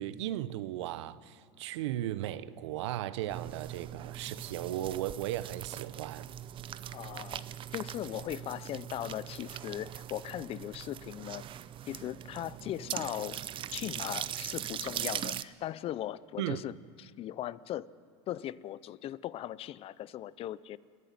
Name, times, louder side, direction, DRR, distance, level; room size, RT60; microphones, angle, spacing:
voice 1, 0.0-6.3 16.4-16.6, right 13 dB, 80° right, 0.8 m, -36 dB
sound 1, 3.3-15.4, right 11 dB, 35° right, 0.7 m, -41 dB
voice 2, 6.9-7.4 7.7-11.4 11.9-13.4 13.7-17.9 18.3-20.8, left 12 dB, 40° left, 0.6 m, -39 dB
29.5 x 11.0 x 9.4 m
supercardioid pair, 105°, 15 cm